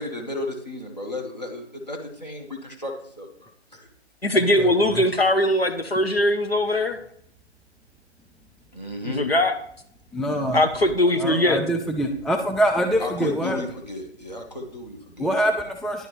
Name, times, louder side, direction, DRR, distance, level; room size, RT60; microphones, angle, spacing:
voice 1, 0.0-3.9 4.8-4.9 8.7-9.3 13.0-15.3, left 2 dB, 40° left, 1 dB, 1.2 m, -34 dB
voice 2, 4.2-7.0 9.0-9.6 10.5-11.6, left 1 dB, 60° left, 6 dB, 0.7 m, -20 dB
voice 3, 10.1-10.6 11.2-13.6 15.2-16.1, right 1 dB, ahead, 4 dB, 0.3 m, -24 dB
10.5 x 3.7 x 3.1 m, 0.69 s
figure-of-eight pair, 170°, 34 cm